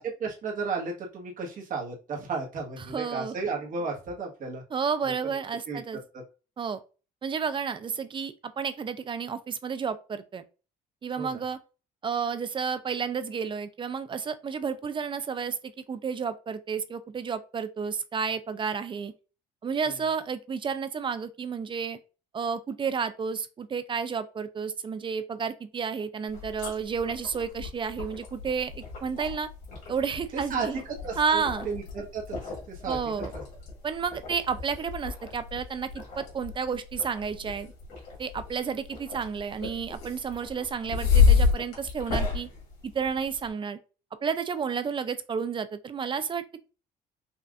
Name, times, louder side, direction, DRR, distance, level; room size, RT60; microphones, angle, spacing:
voice 1, 0.0-4.6 5.0-5.1 5.7-5.8 11.2-11.4 30.3-32.4 32.7-33.0, right 4 dB, 55° right, 1.4 m, -33 dB
voice 2, 2.8-3.3 4.7-6.0 6.6-6.8 7.2-10.4 11.0-11.6 12.0-19.1 19.6-22.0 22.3-29.5 29.9-30.8 31.2-31.7 32.9-33.3 33.8-37.7 38.2-42.5 42.8-43.8 44.2-46.6, right 6 dB, 30° right, 0.5 m, -31 dB
sound 1, 26.3-43.5, left 5 dB, 85° left, 2.3 m, -30 dB
5.6 x 2.5 x 2.5 m
cardioid pair, 110°, 17 cm